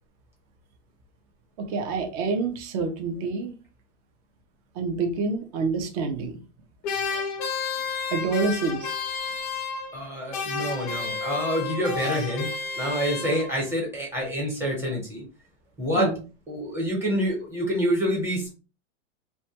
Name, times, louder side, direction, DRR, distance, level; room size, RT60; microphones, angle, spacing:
voice 1, 1.6-3.5 4.8-6.4 8.1-9.0 15.9-16.2, right 4 dB, 35° right, 0.4 m, -27 dB
sound 1, 6.8-10.1 10.3-13.7, left 5 dB, 35° left, 0.4 m, -31 dB
voice 2, 9.9-12.5 12.7-15.2 15.8-16.1 16.5-18.5, equal, 5° right, 0.8 m, -27 dB
2.1 x 2.1 x 2.8 m
supercardioid pair, 155°, 38 cm